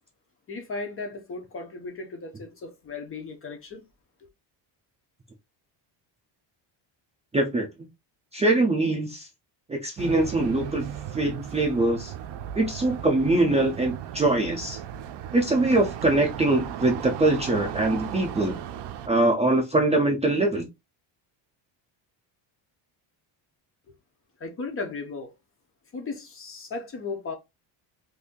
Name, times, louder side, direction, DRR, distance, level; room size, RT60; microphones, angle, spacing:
voice 1, 0.5-3.8 24.4-25.3 25.9-27.3, left 3 dB, 30° left, 0.6 m, -36 dB
voice 2, 7.3-7.7 8.3-9.3 9.7-10.9 11.1-12.1 12.5-14.8 15.3-18.6 19.1-20.6, right 2 dB, 15° right, 0.5 m, -23 dB
sound 1, 10.0-19.1, right 10 dB, 60° right, 0.5 m, -36 dB
2.7 x 2.6 x 3.6 m
cardioid pair, 155°, 46 cm